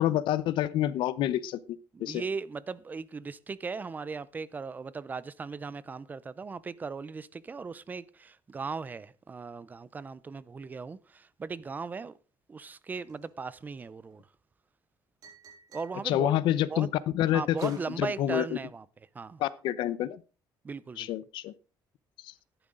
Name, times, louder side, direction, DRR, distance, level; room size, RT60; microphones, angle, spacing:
voice 1, 0.0-1.6 2.0-2.2 16.0-16.9 17.1-18.4 19.4-20.2 21.0-21.5, left 12 dB, 80° left, 0.8 m, -27 dB
voice 2, 1.9-12.2 12.5-14.2 15.7-16.3 16.7-16.9 17.3-18.9 19.1-19.4 20.6-21.1, right 4 dB, 20° right, 0.5 m, -38 dB
sound 1, 12.9-14.1 15.2-16.0 17.6-18.0, right 4 dB, 50° right, 5.7 m, -50 dB
13.5 x 11.0 x 3.8 m
cardioid pair, 160°, 8 cm